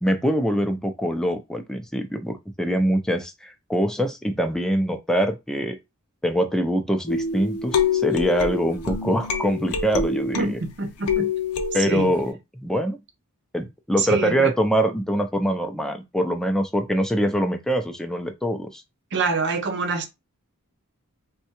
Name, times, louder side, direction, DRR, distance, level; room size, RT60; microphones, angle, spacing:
voice 1, 0.0-5.8 6.2-10.6 11.7-12.3 12.6-13.0 13.5-18.8, equal, 5° left, 0.4 m, -24 dB
sound 1, 7.1-10.6 11.1-12.3, left 5 dB, 85° left, 0.6 m, -26 dB
voice 2, 10.3-11.3 11.8-12.1 14.0-14.5 19.1-20.1, right 3 dB, 55° right, 0.6 m, -25 dB
3.6 x 2.2 x 2.9 m
head